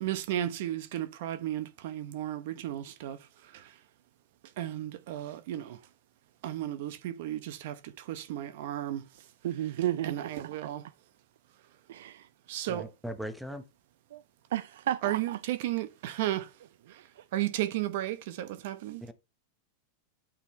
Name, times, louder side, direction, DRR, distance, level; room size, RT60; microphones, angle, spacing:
voice 1, 0.0-3.2 4.6-5.8 6.4-7.8 8.1-9.0 10.0-10.8 12.5-12.9 15.0-16.5 17.3-19.0, right 13 dB, 60° right, 0.9 m, -33 dB
voice 2, 9.4-10.5 11.9-12.3 14.1-14.2 14.5-15.4 17.2-17.3, right 12 dB, 80° right, 0.4 m, -33 dB
voice 3, 12.7-13.6 19.0-19.1, right 1 dB, ahead, 0.8 m, -39 dB
8.9 x 3.7 x 4.2 m
supercardioid pair, 155°, 0 cm